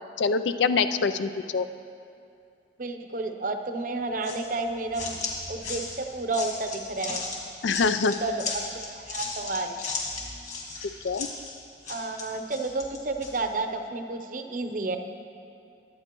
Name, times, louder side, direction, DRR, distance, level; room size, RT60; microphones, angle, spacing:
voice 1, 0.2-1.7 7.6-8.2 11.0-11.3, left 4 dB, 90° left, 11 dB, 0.4 m, -24 dB
voice 2, 2.8-5.2 5.5-7.2 8.2-9.7 11.9-15.0, right 2 dB, 45° right, 6 dB, 0.7 m, -31 dB
sound 1, 4.2-13.4, left 4 dB, 40° left, 1.8 m, -36 dB
21.5 x 8.7 x 3.0 m, 2.5 s
head